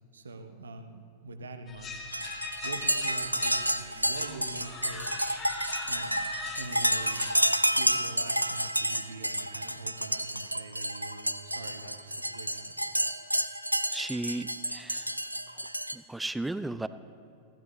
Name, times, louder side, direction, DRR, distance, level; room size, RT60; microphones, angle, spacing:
voice 1, 0.1-2.0 2.6-5.1 5.9-6.2 6.6-7.3 7.7-12.7, right 3 dB, 75° right, 8 dB, 1.0 m, -44 dB
sound 1, 1.7-7.4, left 4 dB, 25° left, 1.8 m, -41 dB
sound 2, 2.1-16.0, equal, 90° right, 0.4 m, -30 dB
voice 2, 13.9-15.2 15.5-15.7 15.9-16.9, right 2 dB, 5° right, 13 dB, 0.4 m, -35 dB
19.5 x 15.0 x 3.1 m, 2.5 s
figure-of-eight pair, 90°, 0 cm